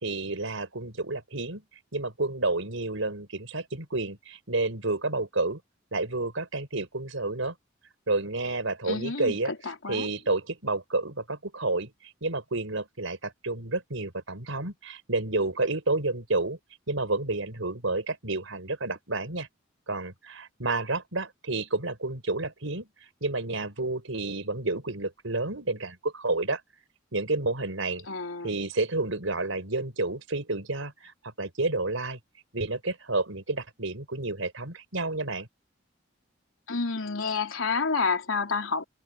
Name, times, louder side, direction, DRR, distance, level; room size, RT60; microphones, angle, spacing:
voice 1, 0.0-1.6 1.9-5.6 5.9-7.5 8.1-11.9 12.2-16.6 16.9-19.5 19.9-22.9 23.2-26.6 27.1-28.1 28.4-32.2 32.5-35.5, right 2 dB, 80° right, 5.1 m, -30 dB
voice 2, 8.9-9.4 9.6-10.1 28.1-28.5 36.7-38.8, left 4 dB, 85° left, 3.4 m, -29 dB
head